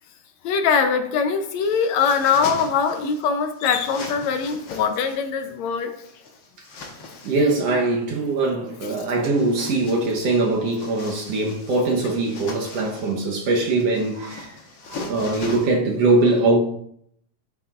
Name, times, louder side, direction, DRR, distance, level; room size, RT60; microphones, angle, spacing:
voice 1, 0.4-5.9, left 6 dB, 75° left, 1.9 m, -22 dB
sound 1, 1.6-3.3 3.6-5.2 5.9-7.5 9.2-15.7, left 3 dB, 55° left, 1.4 m, -39 dB
voice 2, 7.2-14.6 14.9-16.6, right 2 dB, 65° right, 2.0 m, -22 dB
11.5 x 6.9 x 2.5 m
omnidirectional pair, 3.3 m